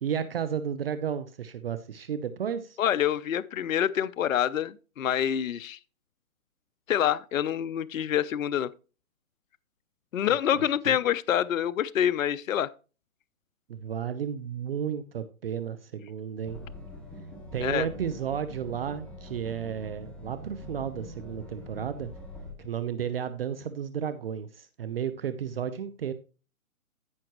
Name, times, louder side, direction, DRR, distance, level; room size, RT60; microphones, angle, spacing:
voice 1, 0.0-2.8 10.5-11.0 13.7-16.6 17.5-22.1 22.6-26.1, right 8 dB, 45° right, 0.8 m, -33 dB
voice 2, 2.8-5.8 6.9-8.7 10.1-12.7 17.6-17.9, left 10 dB, 65° left, 0.6 m, -26 dB
sound 1, 16.4-22.5, left 1 dB, 5° left, 2.4 m, -44 dB
14.0 x 5.9 x 3.0 m
hypercardioid pair, 150°, 42 cm